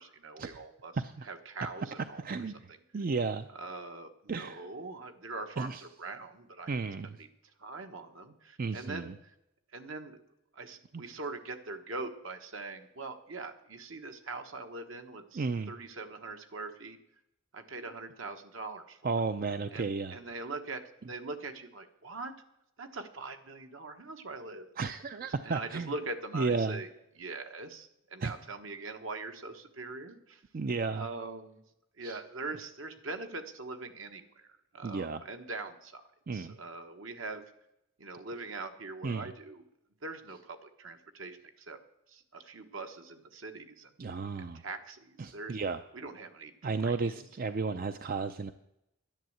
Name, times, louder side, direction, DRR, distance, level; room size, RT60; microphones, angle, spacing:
voice 1, 0.0-0.9 1.3-2.2 3.5-6.8 7.2-7.3 7.6-9.1 9.7-10.2 10.5-17.0 17.5-19.1 19.7-22.3 22.8-24.7 25.4-26.9 27.2-30.4 30.9-31.6 32.0-36.0 36.3-37.4 38.0-39.6 40.0-41.8 42.1-43.9 44.3-45.6 45.9-46.5 46.8-47.3, right 3 dB, 70° right, 6 dB, 1.3 m, -42 dB
voice 2, 2.2-3.5 4.3-4.7 5.6-5.8 6.7-7.2 8.6-9.1 15.3-15.7 19.0-20.2 24.8-25.9 26.3-26.8 28.2-28.3 30.5-31.1 32.0-32.2 34.8-35.2 36.3-36.6 39.0-39.3 44.0-44.6 45.2-45.8 46.6-48.5, right 4 dB, 45° right, 10 dB, 0.5 m, -33 dB
10.5 x 10.5 x 7.9 m, 0.83 s
head